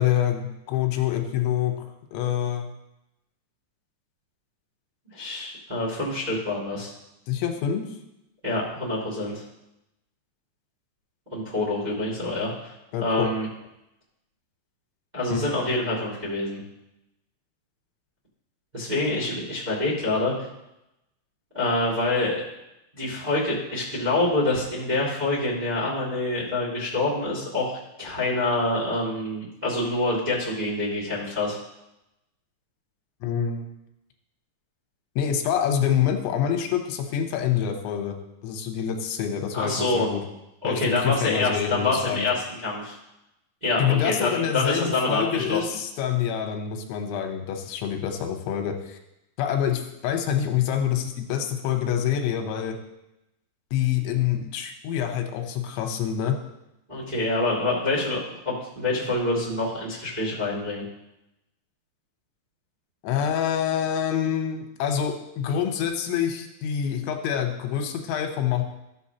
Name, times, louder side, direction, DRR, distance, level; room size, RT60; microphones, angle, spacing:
voice 1, 0.0-1.7 2.1-2.7 7.3-7.9 12.9-13.3 15.3-15.4 33.2-33.7 35.2-38.2 38.4-40.2 40.6-42.3 43.8-49.0 49.4-52.8 53.7-56.4 63.0-68.6, left 9 dB, 85° left, 4 dB, 3.3 m, -26 dB
voice 2, 5.1-6.9 8.4-9.4 11.3-12.7 13.0-13.5 15.1-16.6 18.7-20.3 21.5-22.4 22.9-27.7 28.0-31.6 39.5-40.1 40.6-42.9 43.6-45.8 56.9-60.8, left 2 dB, 30° right, -8 dB, 0.7 m, -26 dB
13.5 x 7.3 x 2.9 m, 0.89 s
omnidirectional pair, 5.3 m